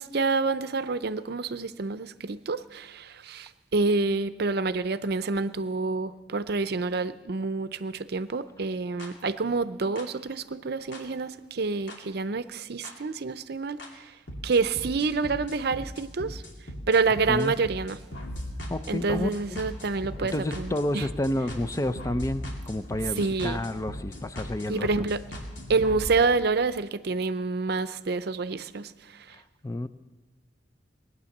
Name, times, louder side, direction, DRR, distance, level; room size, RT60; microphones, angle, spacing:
voice 1, 0.0-14.0 14.4-16.4 16.9-18.0 18.9-21.0 23.2-23.6 24.7-25.2 25.7-28.9, right 4 dB, 60° right, 13 dB, 0.6 m, -28 dB
sound 1, 9.0-9.1 10.0-10.1 10.9-11.0 11.9-12.0 12.8-12.9 13.8-13.9 14.3-26.1, equal, 90° left, 2.8 m, -39 dB
voice 2, 18.7-19.6 20.2-24.9 29.3-29.9, left 1 dB, 20° left, 11 dB, 0.5 m, -30 dB
19.5 x 9.7 x 7.2 m, 1.3 s
head